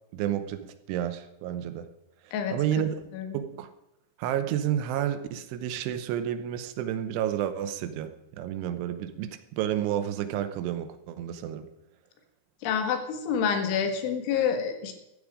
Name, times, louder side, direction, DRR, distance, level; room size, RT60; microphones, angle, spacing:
voice 1, 0.1-1.9 2.2-2.9 3.3-3.7 4.2-11.7, right 10 dB, 80° right, 10 dB, 3.2 m, -31 dB
voice 2, 12.6-14.9, left 7 dB, 75° left, 5 dB, 4.1 m, -28 dB
15.0 x 14.0 x 5.0 m, 0.91 s
omnidirectional pair, 5.7 m